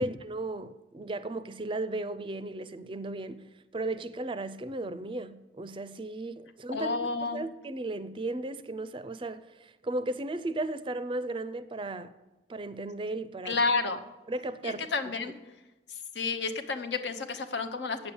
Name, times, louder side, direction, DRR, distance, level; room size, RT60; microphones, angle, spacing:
voice 1, 0.0-3.4 3.7-12.2 12.5-13.6 14.3-14.9, right 2 dB, 30° right, 0.4 m, -35 dB
voice 2, 6.7-7.4 13.4-14.0 14.6-15.4 15.9-18.1, left 4 dB, 80° left, 0.9 m, -31 dB
8.8 x 7.1 x 6.9 m
head